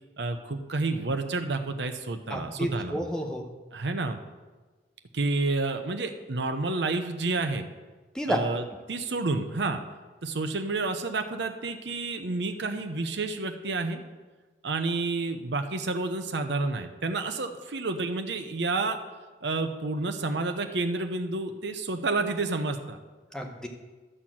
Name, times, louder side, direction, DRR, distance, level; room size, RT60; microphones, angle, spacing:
voice 1, 0.2-3.0 3.7-4.2 5.1-7.7 8.3-8.6 8.9-9.8 10.2-14.0 14.6-19.0 19.4-23.0, right 3 dB, 80° right, 6 dB, 0.8 m, -29 dB
voice 2, 2.3-3.4 8.1-8.4 23.3-23.7, equal, 5° left, 2 dB, 0.9 m, -30 dB
12.5 x 4.4 x 7.4 m, 1.3 s
head